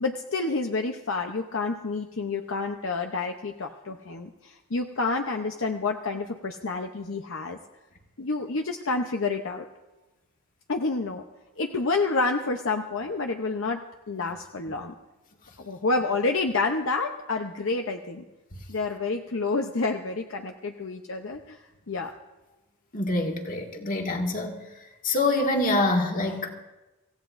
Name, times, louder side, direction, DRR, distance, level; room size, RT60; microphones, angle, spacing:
voice 1, 0.0-7.6 8.2-9.6 10.7-11.2 11.6-13.8 14.1-14.9 15.6-18.2 18.7-21.6 21.9-22.1, left 3 dB, 60° left, 4 dB, 0.7 m, -29 dB
voice 2, 22.9-24.6 25.0-26.5, left 2 dB, 40° left, 2 dB, 1.7 m, -25 dB
25.0 x 16.0 x 2.6 m, 1.1 s
head